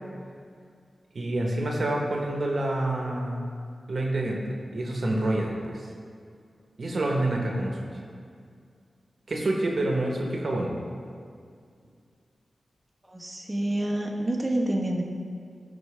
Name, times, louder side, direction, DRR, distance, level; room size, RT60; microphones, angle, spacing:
voice 1, 1.1-3.4 3.9-4.4 4.7-5.9 6.8-7.8 9.3-10.7, right 1 dB, 60° right, 0 dB, 1.1 m, -27 dB
voice 2, 13.0-15.0, right 1 dB, 15° right, -2 dB, 1.1 m, -28 dB
13.0 x 4.6 x 3.4 m, 2.2 s
cardioid pair, 55°, 0 cm